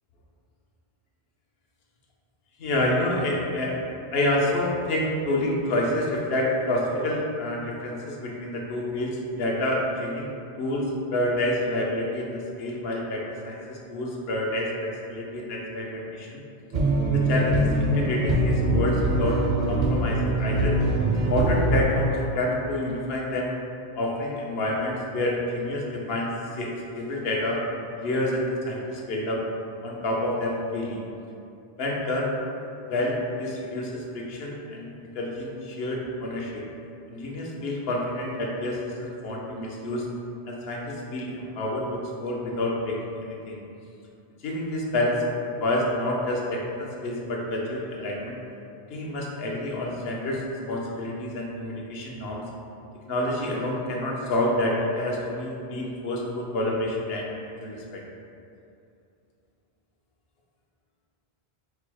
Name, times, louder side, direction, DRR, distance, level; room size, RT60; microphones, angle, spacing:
voice 1, 2.6-3.8 4.1-10.3 10.6-10.8 11.1-16.4 17.1-19.4 19.7-20.7 21.3-23.6 24.0-26.3 26.6-27.6 28.0-29.4 29.8-31.0 31.8-32.3 32.9-34.9 35.1-36.6 37.1-40.1 40.5-43.6 44.4-45.2 45.6-48.4 48.9-52.4 53.1-57.3 57.6-58.0, left 1 dB, 75° left, -2 dB, 0.9 m, -28 dB
sound 1, 16.7-21.8, right 1 dB, 55° right, 0.6 m, -23 dB
4.5 x 2.0 x 4.6 m, 2.6 s
omnidirectional pair, 1.0 m